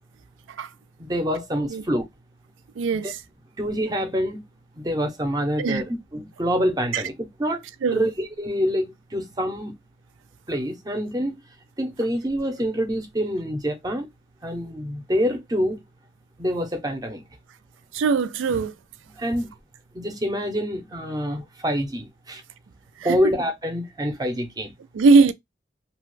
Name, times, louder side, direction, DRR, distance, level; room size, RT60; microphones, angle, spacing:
voice 1, 1.0-2.1 3.0-3.1 3.6-4.4 4.8-7.6 7.9-9.7 10.5-11.4 11.8-14.1 14.4-15.8 16.4-17.2 19.2-19.5 19.9-22.4 23.0-24.7, equal, 20° right, 0.6 m, -26 dB
voice 2, 2.8-3.2 5.6-5.8 6.9-7.0 7.8-8.1 17.9-18.7 23.1-23.2 24.9-25.3, right 4 dB, 90° right, 0.4 m, -20 dB
2.8 x 2.2 x 3.1 m
head